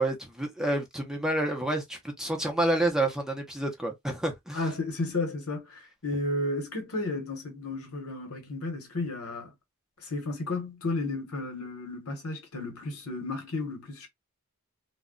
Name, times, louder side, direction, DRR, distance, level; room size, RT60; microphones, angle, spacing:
voice 1, 0.0-4.6, right 1 dB, 5° right, 0.6 m, -29 dB
voice 2, 4.5-9.5 10.0-14.1, left 2 dB, 70° left, 1.0 m, -33 dB
2.2 x 2.1 x 3.7 m
head